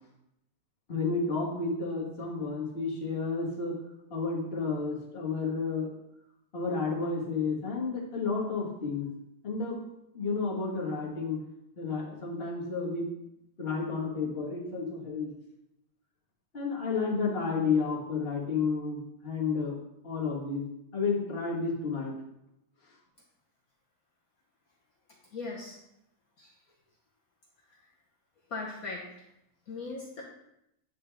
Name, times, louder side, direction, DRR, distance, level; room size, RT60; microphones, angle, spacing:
voice 1, 0.9-3.7 4.1-5.9 6.5-9.1 9.4-9.8 10.1-11.4 11.8-13.1 13.6-15.3 16.5-19.7 20.0-20.6 20.9-22.1, left 4 dB, 30° left, -3 dB, 1.4 m, -31 dB
voice 2, 25.3-25.8 26.4-26.6 28.5-29.1 29.7-30.2, left 3 dB, 55° left, -2 dB, 1.0 m, -38 dB
8.9 x 3.8 x 3.4 m, 0.82 s
omnidirectional pair, 2.4 m